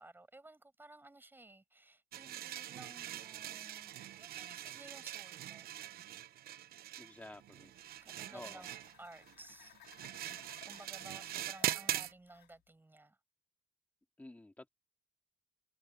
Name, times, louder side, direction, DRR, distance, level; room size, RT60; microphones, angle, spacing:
voice 1, 0.0-5.7 8.0-9.8 10.6-13.2, right 2 dB, 10° right, 6.3 m, -56 dB
sound 1, 2.1-12.1, right 13 dB, 65° right, 0.9 m, -42 dB
voice 2, 7.0-7.7 8.3-8.6 14.2-14.7, left 2 dB, 10° left, 2.7 m, -51 dB
sound 2, 7.3-12.6, left 13 dB, 75° left, 3.9 m, -62 dB
cardioid pair, 110°, 17 cm